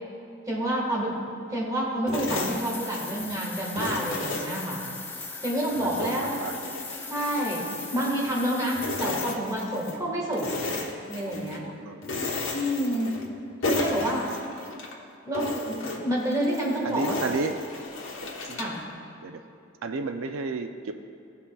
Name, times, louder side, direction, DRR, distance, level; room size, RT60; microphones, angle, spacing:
voice 1, 0.5-1.2 1.5-4.8 5.4-6.5 7.1-10.6 11.1-11.6 12.5-13.1 13.7-14.3 14.6-14.7 15.2-15.5 15.8-17.2 18.5-18.8, equal, 15° right, -4 dB, 1.5 m, -28 dB
sound 1, 2.1-3.4 3.8-5.3 5.7-8.4 8.8-10.0 10.3-11.6 12.0-13.4 13.6-14.9 15.3-18.8, left 2 dB, 80° left, 1.1 m, -34 dB
sound 2, 2.4-9.3, left 3 dB, 10° left, 0.4 m, -39 dB
voice 2, 5.8-6.6 11.3-12.2 16.8-17.6 18.5-18.6 19.2-19.4 19.8-20.9, right 3 dB, 90° right, 6 dB, 0.4 m, -33 dB
16.0 x 5.6 x 2.3 m, 2.5 s
head